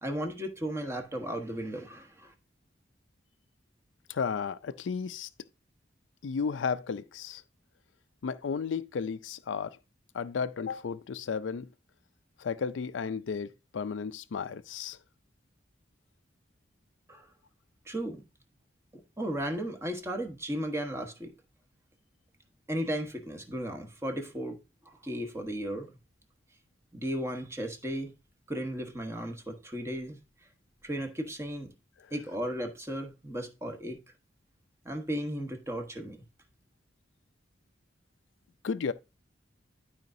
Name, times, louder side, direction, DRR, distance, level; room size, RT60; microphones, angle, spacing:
voice 1, 0.0-2.3 17.1-17.3 17.9-18.2 19.2-21.3 22.7-24.6 24.9-25.9 26.9-28.1 28.5-30.2 30.8-31.7 32.1-34.0 34.8-36.2, equal, 15° right, 1.2 m, -35 dB
voice 2, 4.1-5.3 6.2-7.4 8.2-9.8 10.1-11.7 12.4-15.0 38.6-38.9, left 5 dB, 85° left, 0.4 m, -33 dB
12.0 x 5.0 x 2.6 m
head